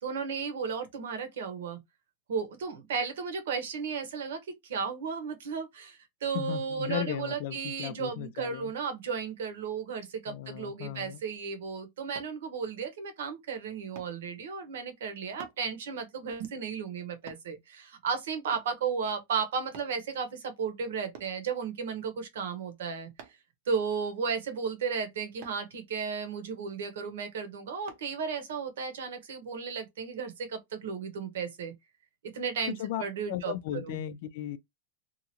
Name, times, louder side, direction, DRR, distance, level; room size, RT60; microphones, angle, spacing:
voice 1, 0.0-1.8 2.3-23.1 23.7-31.7 32.3-33.5 33.8-34.0, right 6 dB, 75° right, 1.0 m, -34 dB
voice 2, 6.3-8.7 10.3-11.2 32.7-33.0 33.3-34.6, left 11 dB, 50° left, 0.4 m, -36 dB
sound 1, 12.2-12.4 14.0-14.2 15.4-15.6 17.3-17.5 18.5-18.8 19.7-20.0 21.1-21.4 23.2-23.5 25.4-25.6 27.9-28.1 28.6-28.8, right 8 dB, 45° right, 0.6 m, -49 dB
2.9 x 2.4 x 2.8 m
supercardioid pair, 175°, 0 cm